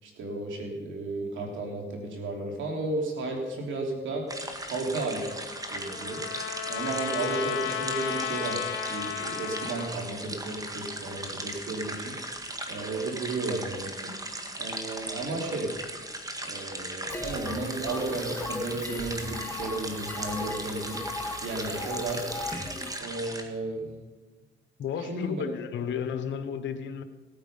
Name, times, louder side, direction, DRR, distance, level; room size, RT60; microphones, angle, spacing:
voice 1, 0.0-4.3 4.6-5.3 5.7-6.3 6.7-8.6 8.9-12.1 12.7-14.1 14.6-15.7 16.4-21.0 21.4-22.2 23.0-23.9 25.1-25.4, right 2 dB, 75° right, 3.4 m, -33 dB
sound 1, 4.3-23.4, right 1 dB, 20° right, 1.8 m, -38 dB
Trumpet, 5.3-9.9, left 9 dB, 90° left, 1.1 m, -34 dB
sound 2, 17.1-23.0, left 2 dB, 10° left, 1.4 m, -37 dB
voice 2, 24.8-27.0, left 7 dB, 70° left, 1.2 m, -33 dB
17.5 x 9.0 x 5.6 m
cardioid pair, 90°, 20 cm